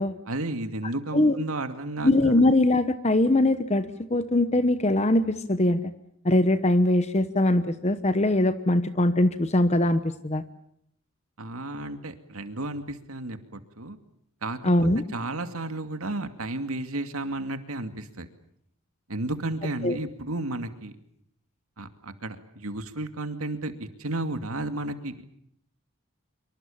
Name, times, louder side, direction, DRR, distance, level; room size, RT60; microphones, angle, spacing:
voice 1, 0.3-2.1 11.4-14.0 14.4-14.7 15.1-18.3 19.1-20.9 21.8-25.1, right 2 dB, 80° right, 8 dB, 2.4 m, -33 dB
voice 2, 2.0-3.8 4.1-5.8 6.2-10.4 14.6-15.0 19.8-20.0, left 1 dB, 30° left, 12 dB, 1.0 m, -22 dB
26.0 x 24.5 x 7.3 m, 0.72 s
head